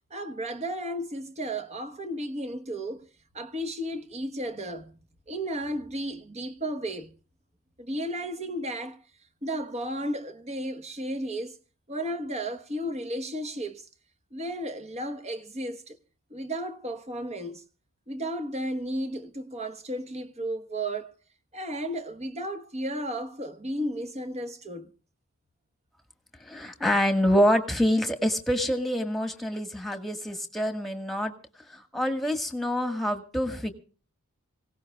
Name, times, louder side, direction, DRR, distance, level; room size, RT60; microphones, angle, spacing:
voice 1, 0.1-3.0 3.3-5.0 5.3-7.1 7.8-9.0 9.4-11.6 11.9-13.9 14.3-16.0 16.3-17.6 18.1-21.2 21.5-24.9, right 1 dB, 30° right, 1.2 m, -33 dB
voice 2, 26.4-31.3 31.7-33.7, equal, ahead, 1.7 m, -26 dB
25.5 x 17.5 x 2.4 m
head